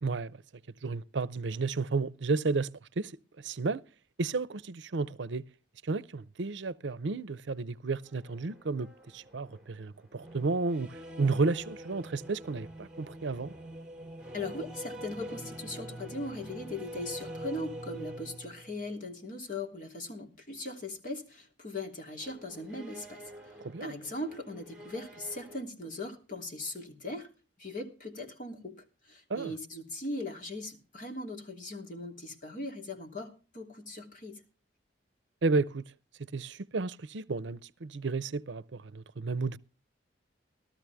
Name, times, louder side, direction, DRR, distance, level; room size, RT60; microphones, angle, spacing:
voice 1, 0.0-0.4 0.8-2.7 3.0-3.1 3.4-3.8 4.2-5.4 5.8-13.5 23.6-23.9 29.3-29.5 35.4-35.9 36.3-39.6, right 3 dB, 75° right, 0.6 m, -32 dB
sound 1, 8.0-19.0 22.2-25.6, right 1 dB, 5° right, 2.4 m, -45 dB
voice 2, 14.3-23.5 23.8-27.3 27.6-34.4, left 2 dB, 45° left, 3.0 m, -39 dB
15.0 x 13.0 x 3.5 m
head